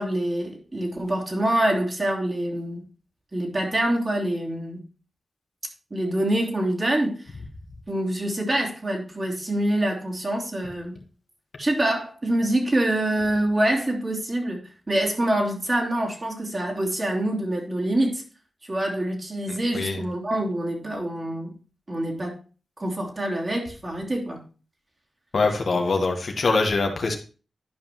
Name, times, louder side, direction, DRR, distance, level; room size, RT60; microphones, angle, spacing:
voice 1, 0.0-2.8 3.3-4.8 5.9-7.1 7.9-11.0 11.6-18.2 18.6-21.5 21.9-22.4 22.8-24.4, right 1 dB, 40° right, -1 dB, 2.8 m, -25 dB
voice 2, 19.5-20.0 25.3-27.2, left 3 dB, 70° left, 3 dB, 1.4 m, -24 dB
11.5 x 5.2 x 3.0 m, 0.36 s
cardioid pair, 55°, 0 cm